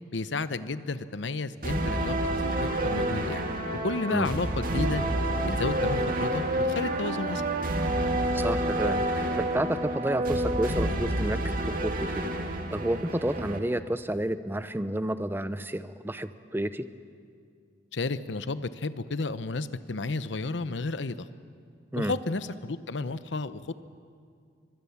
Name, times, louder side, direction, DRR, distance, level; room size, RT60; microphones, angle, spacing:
voice 1, 0.1-3.4 3.8-5.0 5.4-7.4 17.9-21.2 21.9-23.7, left 3 dB, 80° left, 13 dB, 0.8 m, -32 dB
sound 1, 1.6-13.6, right 1 dB, 50° right, 2.2 m, -28 dB
voice 2, 8.3-12.3 12.7-16.9 21.9-22.1, right 1 dB, 10° right, 12 dB, 0.7 m, -30 dB
24.5 x 22.5 x 7.2 m, 2.3 s
head